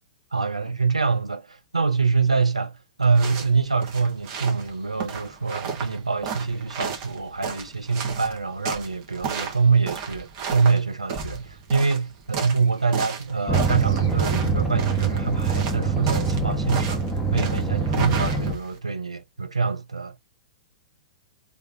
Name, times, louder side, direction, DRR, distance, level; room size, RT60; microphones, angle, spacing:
voice 1, 0.3-17.0 17.3-20.2, right 4 dB, 90° right, 0.7 m, -25 dB
sound 1, 3.0-18.8, right 6 dB, 40° right, 1.5 m, -34 dB
sound 2, 13.5-18.6, right 4 dB, ahead, 1.0 m, -24 dB
3.5 x 3.3 x 3.7 m
figure-of-eight pair, 110°, 3 cm